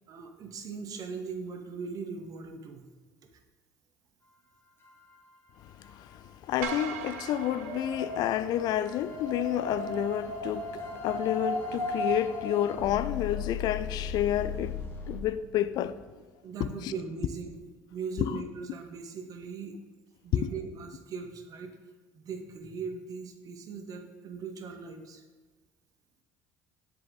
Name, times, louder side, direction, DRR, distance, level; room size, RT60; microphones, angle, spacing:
voice 1, 0.1-2.9 16.4-17.6 17.9-19.7 20.2-21.7 22.1-25.2, right 5 dB, 50° right, 0.9 m, -39 dB
sound 1, 4.8-15.2, left 8 dB, 25° left, 1.5 m, -41 dB
voice 2, 5.8-14.8 15.1-16.0 16.6-16.9 18.2-18.4 20.3-20.5, left 11 dB, 60° left, 0.4 m, -30 dB
sound 2, 6.6-9.0, right 7 dB, 85° right, 0.5 m, -40 dB
Wind, 7.4-13.4, equal, 25° right, 2.1 m, -36 dB
7.5 x 4.9 x 3.9 m
hypercardioid pair, 75°, 8 cm